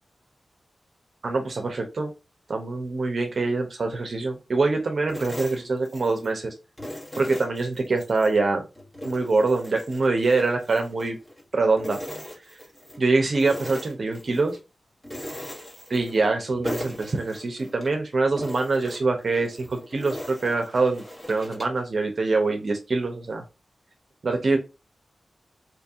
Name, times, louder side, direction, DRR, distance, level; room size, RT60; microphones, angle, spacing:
voice 1, 1.2-2.1 2.5-6.5 7.2-8.6 9.0-11.2 11.5-12.0 13.0-14.6 15.9-21.0 21.3-23.4 24.2-24.6, right 3 dB, 60° right, 4 dB, 0.7 m, -24 dB
sound 1, 5.1-6.4 6.8-8.3 8.7-11.4 11.8-13.0 13.3-14.6 15.0-16.4 16.6-18.0 18.4-21.8, equal, 15° left, 1.4 m, -39 dB
3.0 x 2.6 x 3.5 m, 0.28 s
cardioid pair, 50°, 0 cm